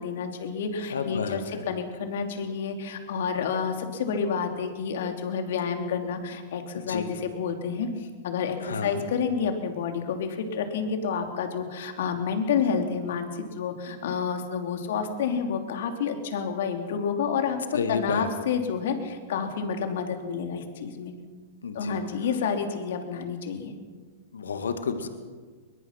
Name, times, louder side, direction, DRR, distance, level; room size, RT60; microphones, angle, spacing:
voice 1, 0.0-17.6 17.9-21.1 21.7-23.7, left 6 dB, 70° left, 5 dB, 3.1 m, -29 dB
voice 2, 0.9-1.6 6.8-7.1 8.6-9.0 17.7-18.3 21.6-22.0 24.3-25.1, left 5 dB, 85° left, 7 dB, 2.0 m, -30 dB
22.0 x 22.0 x 5.9 m, 1.5 s
hypercardioid pair, 110°, 0 cm